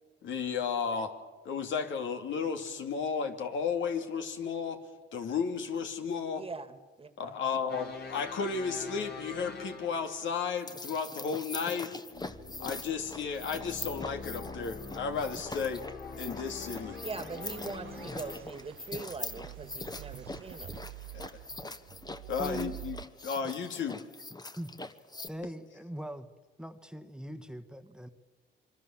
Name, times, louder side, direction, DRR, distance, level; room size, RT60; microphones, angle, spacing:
voice 1, 0.2-1.1 1.4-4.8 5.1-6.4 7.2-11.9 12.6-15.9 16.2-17.0 21.1-21.3 22.3-24.1, left 6 dB, 70° left, 5 dB, 2.8 m, -33 dB
voice 2, 6.4-7.4 17.0-20.7, right 4 dB, 30° right, 11 dB, 1.9 m, -42 dB
sound 1, 7.7-10.4 12.1-18.4, left 4 dB, 55° left, 4.0 m, -44 dB
sound 2, 10.5-25.3, left 2 dB, 20° left, 1.4 m, -43 dB
sound 3, 16.1-23.0, right 17 dB, 75° right, 0.7 m, -48 dB
voice 3, 22.4-22.7 24.6-24.7 25.3-26.3 26.6-28.1, right 1 dB, 5° right, 9 dB, 1.5 m, -40 dB
26.0 x 24.0 x 7.4 m, 1.2 s
cardioid pair, 90°, 20 cm